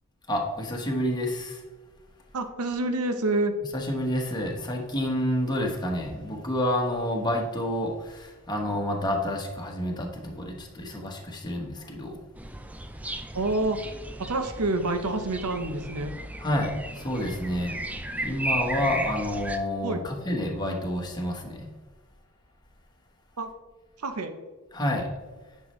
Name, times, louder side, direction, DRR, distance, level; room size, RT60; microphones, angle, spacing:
voice 1, 0.3-1.6 3.7-12.2 16.4-17.8 18.2-21.7 24.7-25.1, left 1 dB, 20° left, 0 dB, 1.2 m, -29 dB
voice 2, 2.3-3.5 13.3-13.8 14.2-16.1 18.8-19.1 19.8-20.0 23.4-23.5 24.0-24.3, right 2 dB, 85° right, 7 dB, 0.8 m, -28 dB
sound 1, 12.4-19.6, right 1 dB, 5° right, 0.4 m, -35 dB
9.5 x 5.6 x 3.2 m, 1.3 s
head